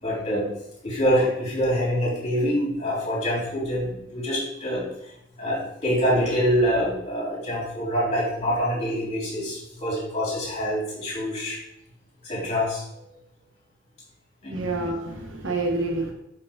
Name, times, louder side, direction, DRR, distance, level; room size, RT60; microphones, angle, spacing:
voice 1, 0.0-0.5 0.8-4.8 5.4-11.6 12.2-12.8 14.4-14.5, equal, 30° left, -6 dB, 3.3 m, -25 dB
voice 2, 14.5-16.1, right 2 dB, 70° right, 2 dB, 1.3 m, -28 dB
8.8 x 5.3 x 3.7 m, 0.81 s
head